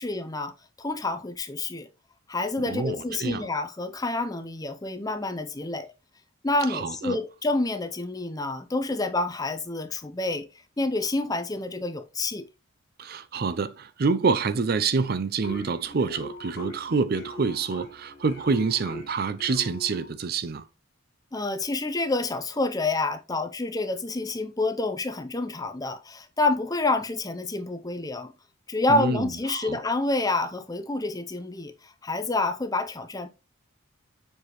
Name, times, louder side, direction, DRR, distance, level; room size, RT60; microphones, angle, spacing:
voice 1, 0.0-1.9 2.3-5.9 6.4-10.5 10.8-12.5 21.3-28.3 28.7-33.3, left 2 dB, 15° left, 0.6 m, -28 dB
voice 2, 6.7-7.2 13.0-20.6 28.9-29.8, right 4 dB, 45° right, 0.4 m, -27 dB
sound 1, 15.4-20.2, left 1 dB, 55° left, 2.4 m, -41 dB
7.4 x 4.6 x 3.1 m
head